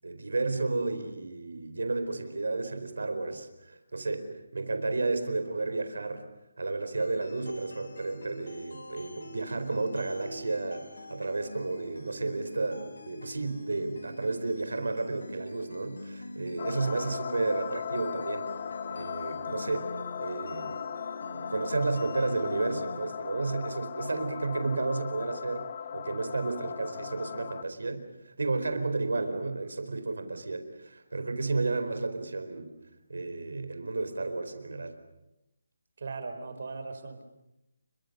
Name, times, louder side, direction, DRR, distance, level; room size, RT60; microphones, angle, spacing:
voice 1, 0.0-6.2 6.6-18.5 18.9-19.9 20.2-20.8 21.5-32.7 33.1-35.0, right 3 dB, 85° right, 8 dB, 4.5 m, -32 dB
sound 1, 7.0-23.0, left 1 dB, 80° left, 5.1 m, -46 dB
sound 2, 16.6-27.6, left 8 dB, 35° left, 1.0 m, -38 dB
voice 2, 36.0-37.2, right 4 dB, 50° right, 7 dB, 4.5 m, -38 dB
30.0 x 24.0 x 6.8 m, 0.88 s
hypercardioid pair, 170°, 0 cm